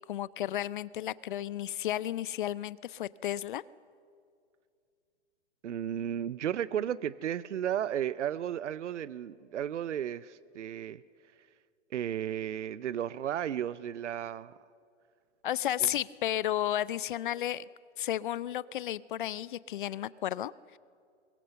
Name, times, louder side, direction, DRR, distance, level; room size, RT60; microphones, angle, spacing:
voice 1, 0.1-3.6 15.4-17.6 18.0-20.8, left 12 dB, 45° left, 21 dB, 0.4 m, -33 dB
voice 2, 5.6-11.0 11.9-14.6, right 10 dB, 75° right, 19 dB, 0.6 m, -34 dB
23.5 x 22.0 x 6.7 m, 2.3 s
figure-of-eight pair, 120°, 35 cm